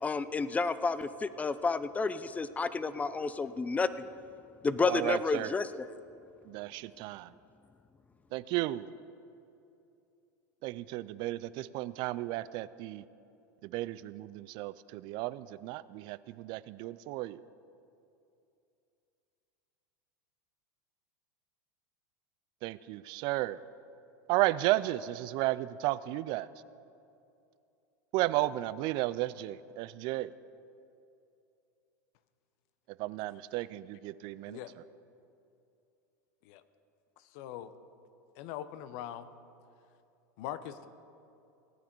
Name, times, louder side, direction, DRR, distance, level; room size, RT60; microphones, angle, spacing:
voice 1, 0.0-4.1 4.6-5.9, left 4 dB, 15° left, 14 dB, 0.5 m, -31 dB
voice 2, 4.9-5.5 6.5-7.3 8.3-8.9 10.6-13.0 13.6-17.4 22.6-23.6 24.3-26.5 28.1-30.3 33.0-34.6, right 17 dB, 50° right, 17 dB, 0.4 m, -33 dB
voice 3, 37.2-37.7 38.4-39.3 40.4-40.9, left 11 dB, 60° left, 13 dB, 0.7 m, -42 dB
17.5 x 9.2 x 4.5 m, 2.7 s
hypercardioid pair, 105°, 10 cm